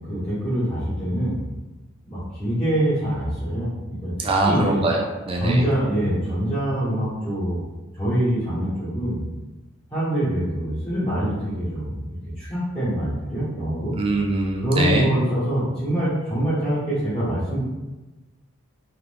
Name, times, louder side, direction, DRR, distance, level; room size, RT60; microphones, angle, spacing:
voice 1, 0.1-1.4 2.0-4.8 5.4-7.6 8.0-9.2 9.9-13.9 14.6-17.6, right 1 dB, 20° left, -13 dB, 1.1 m, -24 dB
voice 2, 4.2-5.6 13.9-15.1, right 2 dB, 25° right, 0 dB, 0.4 m, -22 dB
2.6 x 2.5 x 3.4 m, 1.1 s
head